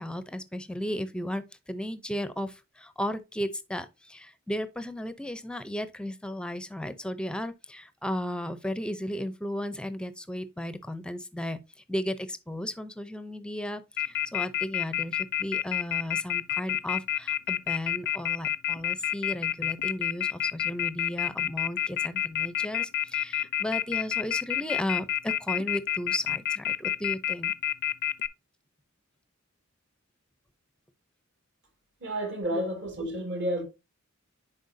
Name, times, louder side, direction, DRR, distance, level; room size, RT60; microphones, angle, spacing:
voice 1, 0.0-11.6 11.9-27.5 32.5-32.6, equal, 5° left, 0.6 m, -35 dB
Telephone, 14.0-28.3, left 10 dB, 50° left, 0.5 m, -28 dB
voice 2, 32.0-33.6, right 1 dB, 55° right, 2.3 m, -31 dB
10.5 x 4.4 x 2.7 m
head